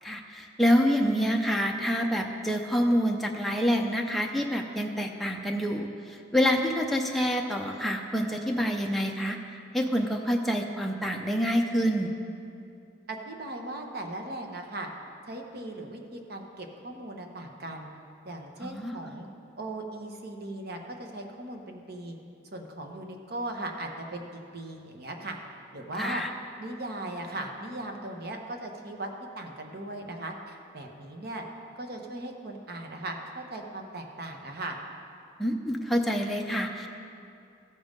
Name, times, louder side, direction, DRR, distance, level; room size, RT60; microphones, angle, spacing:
voice 1, 0.0-9.4 9.7-12.1 18.6-19.0 26.0-26.3 35.4-36.9, equal, ahead, 1 dB, 0.5 m, -27 dB
voice 2, 13.1-14.9 15.3-17.9 18.2-19.3 19.6-22.2 22.5-25.4 25.7-26.2 26.6-29.1 29.3-31.4 31.8-34.8, right 2 dB, 55° right, 3 dB, 1.0 m, -38 dB
14.5 x 5.3 x 5.2 m, 2.5 s
head